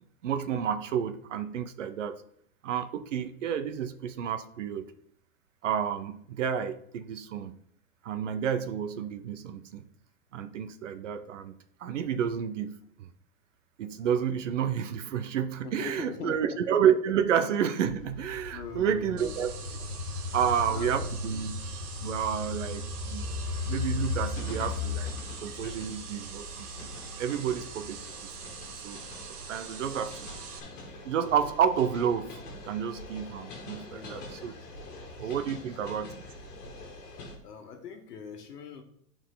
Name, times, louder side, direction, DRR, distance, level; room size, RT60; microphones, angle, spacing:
voice 1, 0.2-2.2 2.6-4.9 5.6-7.6 8.0-9.9 10.3-13.1 13.8-19.5 20.3-21.5 22.0-23.3 23.7-25.1 25.4-26.9 27.2-28.3 28.8-29.0 29.5-30.3 31.1-34.5 35.2-36.1, right 8 dB, 50° right, 10 dB, 0.7 m, -30 dB
voice 2, 15.6-16.4 18.5-19.5 20.3-21.1 33.9-35.6 37.4-38.8, left 6 dB, 80° left, 6 dB, 1.5 m, -43 dB
sound 1, 17.8-37.4, left 3 dB, 50° left, 2.2 m, -39 dB
sound 2, 19.2-30.6, right 5 dB, 65° right, 1.6 m, -43 dB
10.5 x 4.6 x 3.8 m, 0.70 s
supercardioid pair, 180°, 47 cm